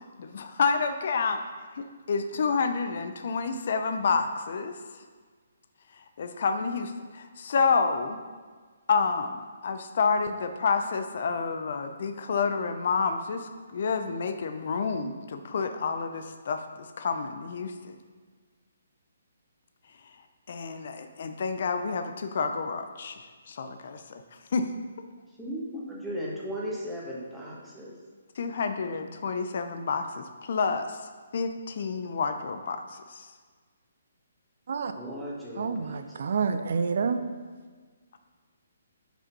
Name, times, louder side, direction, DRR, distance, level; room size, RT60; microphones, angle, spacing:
voice 1, 0.0-1.4 1.8-4.8 6.0-8.2 8.9-18.0 20.5-24.2 24.5-24.7 28.4-31.0 31.3-33.3, left 5 dB, 55° left, 7 dB, 0.6 m, -29 dB
voice 2, 25.4-27.9 34.9-36.0, equal, 5° right, -6 dB, 1.5 m, -36 dB
voice 3, 35.6-37.2, right 5 dB, 60° right, 9 dB, 0.6 m, -28 dB
5.5 x 4.9 x 5.4 m, 1.5 s
figure-of-eight pair, 140°, 0 cm